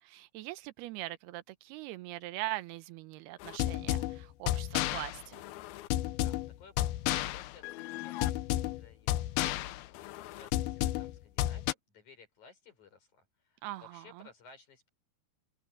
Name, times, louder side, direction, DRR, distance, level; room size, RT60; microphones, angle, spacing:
voice 1, 0.0-5.4 13.6-14.3, right 17 dB, 85° right, 2.8 m, -41 dB
sound 1, 3.4-11.7, left 15 dB, 85° left, 2.5 m, -33 dB
voice 2, 6.1-7.0 7.3-14.9, left 4 dB, 50° left, 6.9 m, -58 dB
omnidirectional pair, 4.5 m